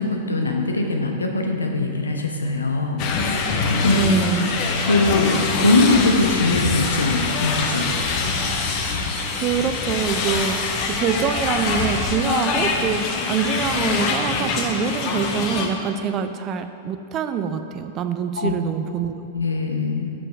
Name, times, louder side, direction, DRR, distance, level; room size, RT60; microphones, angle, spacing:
voice 1, 0.0-3.0 3.8-4.0 4.8-7.9 18.4-18.5 19.3-20.1, left 2 dB, 75° left, 2 dB, 0.8 m, -21 dB
sound 1, 3.0-15.7, left 4 dB, 40° left, 0.7 m, -24 dB
voice 2, 4.0-4.5 9.3-10.6 10.9-19.2, right 7 dB, 30° right, 9 dB, 0.4 m, -25 dB
6.3 x 5.9 x 4.6 m, 2.5 s
figure-of-eight pair, 95°, 0 cm